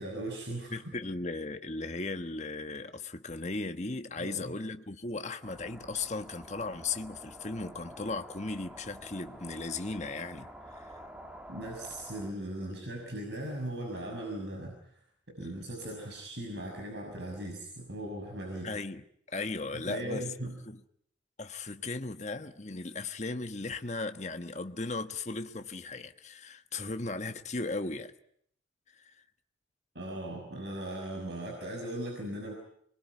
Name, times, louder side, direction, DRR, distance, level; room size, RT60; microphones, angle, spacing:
voice 1, 0.0-0.7 4.2-4.5 11.5-15.0 15.3-18.7 19.7-20.6 29.9-32.5, right 1 dB, 70° right, 6.1 m, -38 dB
voice 2, 0.7-10.5 10.7-11.0 12.6-12.7 18.6-20.3 20.7-20.8 21.4-28.1 28.9-29.1, left 3 dB, 40° left, 1.3 m, -37 dB
sound 1, 5.4-12.3, equal, 5° right, 2.1 m, -49 dB
26.5 x 22.0 x 9.5 m
head